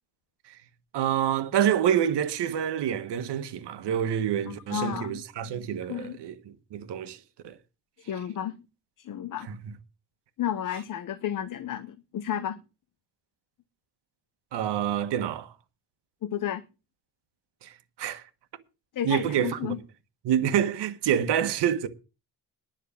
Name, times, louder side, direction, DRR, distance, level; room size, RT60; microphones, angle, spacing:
voice 1, 0.9-7.6 9.4-9.7 14.5-15.5 17.6-17.7 18.0-18.2 19.0-19.7 20.2-21.9, right 9 dB, 85° right, 1.5 m, -27 dB
voice 2, 4.5-5.2 5.9-6.2 8.1-8.6 9.0-9.5 10.4-12.6 16.2-16.6 18.9-19.8, left 10 dB, 50° left, 0.9 m, -32 dB
10.5 x 6.6 x 8.6 m
cardioid pair, 155°, 40 cm